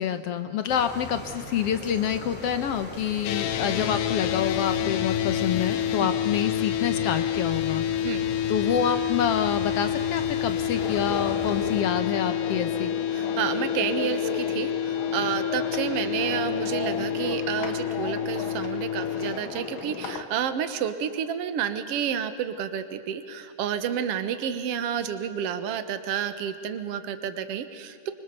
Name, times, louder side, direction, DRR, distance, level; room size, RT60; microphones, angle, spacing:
voice 1, 0.0-7.8 8.5-13.0, left 8 dB, 65° left, 9 dB, 1.7 m, -27 dB
sound 1, 0.7-11.8, equal, 5° left, 3.0 m, -40 dB
sound 2, 3.2-19.3, left 10 dB, 85° left, 2.6 m, -28 dB
sound 3, 10.7-20.2, left 5 dB, 45° left, 2.0 m, -35 dB
voice 2, 13.1-28.1, right 8 dB, 55° right, 10 dB, 2.0 m, -30 dB
25.5 x 25.0 x 7.0 m, 2.7 s
omnidirectional pair, 3.6 m